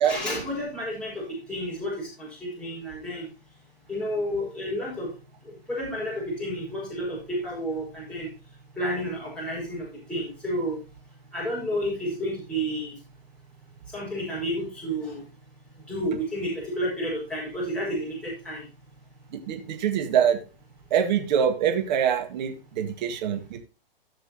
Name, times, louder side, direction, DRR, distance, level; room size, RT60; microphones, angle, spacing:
voice 1, 0.0-3.3 3.9-5.1 5.4-8.3 8.8-10.8 11.3-13.0 13.9-15.2 15.9-18.7, equal, 5° left, -6 dB, 5.4 m, -31 dB
voice 2, 19.3-20.4 20.9-23.6, right 8 dB, 50° right, 5 dB, 1.9 m, -24 dB
15.5 x 6.3 x 2.8 m, 0.30 s
hypercardioid pair, 125°, 29 cm